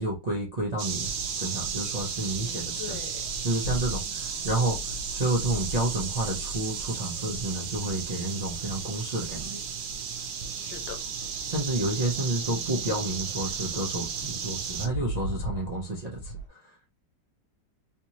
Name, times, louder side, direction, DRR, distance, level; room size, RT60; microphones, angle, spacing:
voice 1, 0.0-3.0 3.4-9.6 11.4-16.7, right 2 dB, 45° right, 0.5 m, -30 dB
sound 1, 0.8-14.9, right 6 dB, 75° right, 1.3 m, -34 dB
sound 2, 1.0-16.5, left 1 dB, 70° left, 1.1 m, -44 dB
voice 2, 2.3-3.2 10.6-11.0, left 10 dB, 85° left, 1.3 m, -42 dB
3.4 x 2.9 x 2.9 m
omnidirectional pair, 2.0 m